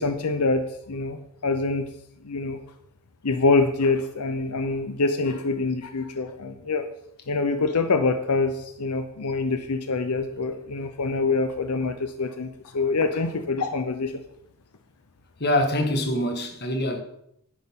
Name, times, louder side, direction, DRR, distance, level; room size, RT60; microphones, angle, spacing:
voice 1, 0.0-1.9 2.2-2.6 3.2-6.8 7.3-14.1, left 3 dB, 85° left, 0.8 m, -25 dB
voice 2, 15.4-17.0, left 1 dB, 45° left, 1.7 m, -24 dB
10.5 x 10.5 x 3.8 m
head